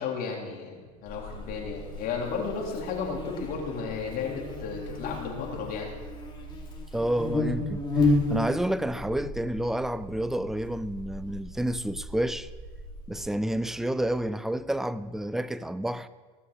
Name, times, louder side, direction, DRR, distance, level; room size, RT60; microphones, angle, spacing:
voice 1, 0.0-6.0, left 5 dB, 45° left, 3.7 m, -33 dB
sound 1, 0.9-15.4, right 10 dB, 75° right, 4.7 m, -50 dB
Buzz, 1.1-13.2, left 2 dB, 25° left, 3.2 m, -33 dB
voice 2, 6.9-12.5 13.1-16.1, right 1 dB, ahead, 0.4 m, -29 dB
16.5 x 6.9 x 6.1 m
hypercardioid pair, 100°, 20 cm